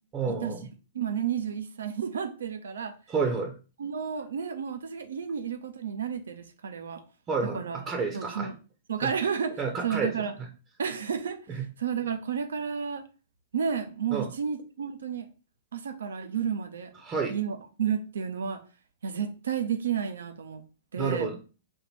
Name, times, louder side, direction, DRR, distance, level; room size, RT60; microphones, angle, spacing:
voice 1, 0.1-0.7 3.1-3.5 7.3-8.5 9.0-9.1 9.6-10.1 11.5-11.6 14.1-14.3 17.0-17.4 21.0-21.4, right 4 dB, 25° right, 3 dB, 0.9 m, -30 dB
voice 2, 0.9-2.9 3.8-7.0 7.4-7.8 8.1-8.5 8.9-10.3 10.8-13.0 13.5-15.3 15.7-16.9 17.3-18.6 19.0-20.6 20.9-21.3, right 7 dB, 75° right, 7 dB, 0.8 m, -31 dB
4.5 x 2.6 x 4.4 m, 0.35 s
hypercardioid pair, 115°, 0 cm